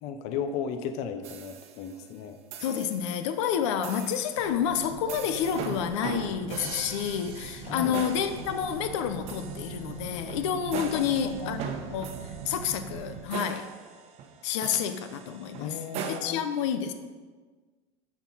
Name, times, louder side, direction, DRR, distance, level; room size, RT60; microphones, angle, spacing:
voice 1, 0.0-2.4 7.6-8.0 10.9-11.5 15.6-16.4, left 7 dB, 50° left, 8 dB, 0.8 m, -35 dB
sound 1, 1.2-2.0 2.5-3.2 3.8-4.4 5.1-16.2, right 7 dB, 45° right, 1.0 m, -40 dB
voice 2, 2.6-11.6 11.9-13.7 14.4-15.8 16.1-16.9, left 8 dB, 80° left, 8 dB, 0.8 m, -29 dB
sound 2, 4.3-13.2, right 7 dB, 80° right, 1.1 m, -42 dB
13.5 x 4.6 x 5.6 m, 1.4 s
supercardioid pair, 155°, 15 cm